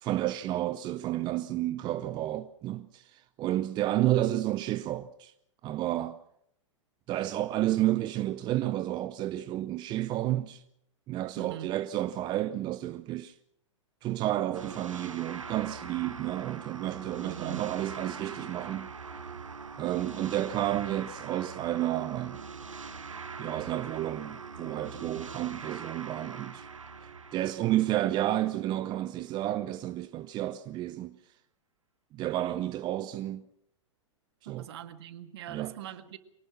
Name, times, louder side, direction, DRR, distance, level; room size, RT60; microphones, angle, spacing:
voice 1, 0.0-5.3 5.6-6.2 7.1-10.6 11.1-13.4 14.0-18.9 19.8-22.4 23.4-26.7 27.0-31.1 32.1-33.4 34.5-34.6 35.5-35.7, right 14 dB, 25° right, 0.7 m, -31 dB
voice 2, 11.4-11.7 17.2-17.7 34.5-36.2, right 11 dB, 55° right, 1.8 m, -42 dB
sound 1, 14.5-28.9, right 5 dB, 80° right, 1.5 m, -43 dB
23.5 x 18.5 x 6.1 m
figure-of-eight pair, 105°, 16 cm